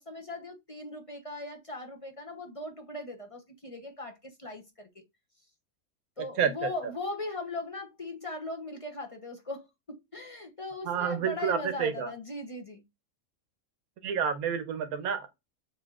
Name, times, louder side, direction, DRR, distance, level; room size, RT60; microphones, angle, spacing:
voice 1, 0.0-5.0 6.2-12.8, left 2 dB, 30° left, 0.7 m, -39 dB
voice 2, 6.4-6.7 10.8-12.1 14.0-15.3, right 7 dB, 85° right, 1.3 m, -29 dB
6.7 x 2.9 x 2.4 m
omnidirectional pair, 1.5 m